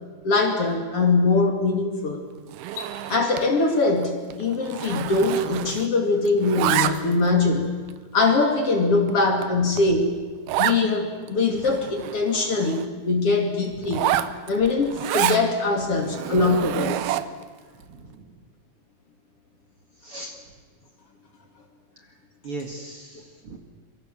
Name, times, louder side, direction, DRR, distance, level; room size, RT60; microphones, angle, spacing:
voice 1, 0.2-2.2 3.1-7.7 8.1-10.1 10.6-14.1 14.5-17.0, left 3 dB, 40° left, 3 dB, 2.9 m, -22 dB
Zipper (clothing), 2.5-3.5 3.8-4.0 4.3-6.0 6.3-7.3 7.9-8.0 8.6-8.7 9.1-9.2 9.4-9.5 9.8-9.9 10.5-10.8 11.3-11.4 11.6-12.9 13.8-15.4 16.0-17.4, right 12 dB, 80° right, 2.8 m, -28 dB
sound 1, 2.7-2.9 4.7-4.9 6.8-7.0, left 7 dB, 85° left, 4.8 m, -40 dB
voice 2, 15.8-16.2 17.8-18.3 20.0-20.4 22.4-23.6, right 2 dB, 45° right, 3 dB, 2.4 m, -39 dB
27.0 x 23.5 x 7.5 m, 1.5 s
omnidirectional pair, 4.4 m